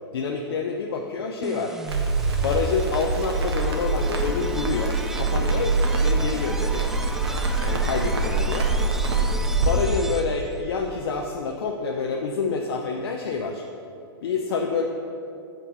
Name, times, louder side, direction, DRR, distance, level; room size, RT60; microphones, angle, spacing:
voice 1, 0.1-1.8 2.4-6.9 7.6-8.7 9.4-13.6 14.2-14.9, left 4 dB, 70° left, 2 dB, 0.7 m, -27 dB
sound 1, 1.4-10.6, right 2 dB, 5° right, 0.3 m, -34 dB
Crackle, 1.9-9.7, right 3 dB, 75° right, 1.4 m, -24 dB
8.3 x 4.5 x 6.8 m, 2.7 s
hypercardioid pair, 120°, 13 cm